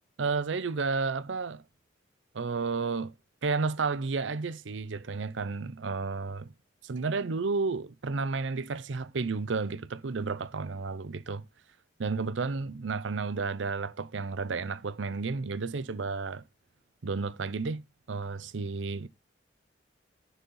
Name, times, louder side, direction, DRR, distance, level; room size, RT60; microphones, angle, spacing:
voice 1, 0.2-1.6 2.3-3.1 3.4-6.5 6.8-11.4 12.0-16.4 17.0-17.8 18.1-19.1, right 4 dB, 80° right, 0.6 m, -32 dB
10.0 x 4.2 x 5.4 m
head